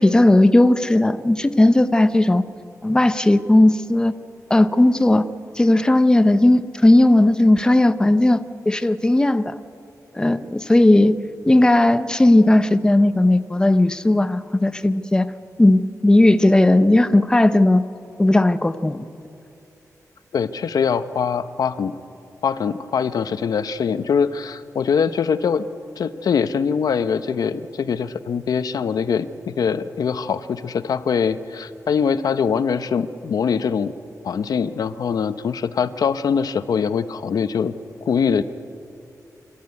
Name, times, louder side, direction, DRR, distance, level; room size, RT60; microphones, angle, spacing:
voice 1, 0.0-2.4 2.8-4.1 4.5-5.3 5.6-9.5 10.1-11.2 11.5-15.3 15.6-17.8 18.2-19.1, left 1 dB, 10° left, 11 dB, 0.7 m, -16 dB
voice 2, 20.3-22.0 22.4-25.6 26.0-33.9 34.2-37.7 38.1-38.4, left 6 dB, 85° left, 12 dB, 0.8 m, -23 dB
26.5 x 13.0 x 9.6 m, 2.6 s
wide cardioid pair, 170°, 6 cm